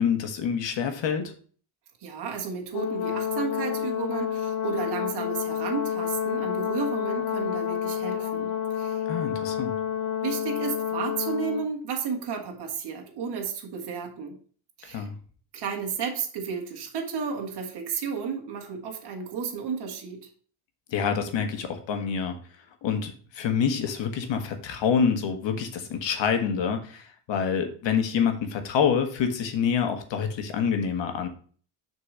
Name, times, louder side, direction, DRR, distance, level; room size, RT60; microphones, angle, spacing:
voice 1, 0.0-1.3 9.1-9.7 14.8-15.1 20.9-22.4 22.8-31.3, left 7 dB, 60° left, 6 dB, 1.6 m, -26 dB
voice 2, 2.0-9.0 10.2-14.4 14.8-15.1 15.5-20.2, right 6 dB, 55° right, 1 dB, 1.8 m, -33 dB
Brass instrument, 2.7-11.7, left 9 dB, 80° left, 1.1 m, -29 dB
6.7 x 4.5 x 5.6 m, 0.43 s
cardioid pair, 145°, 49 cm